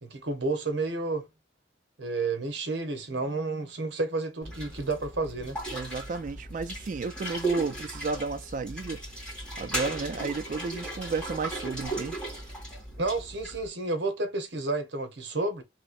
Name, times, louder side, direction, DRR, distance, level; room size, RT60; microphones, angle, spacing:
voice 1, 0.0-1.3 2.0-5.6 13.0-15.6, right 3 dB, 65° right, 0.9 m, -31 dB
sound 1, 4.4-13.7, right 1 dB, 5° left, 2.1 m, -37 dB
voice 2, 5.7-9.3 9.6-12.2, right 4 dB, 40° right, 0.3 m, -33 dB
3.2 x 2.9 x 2.5 m
head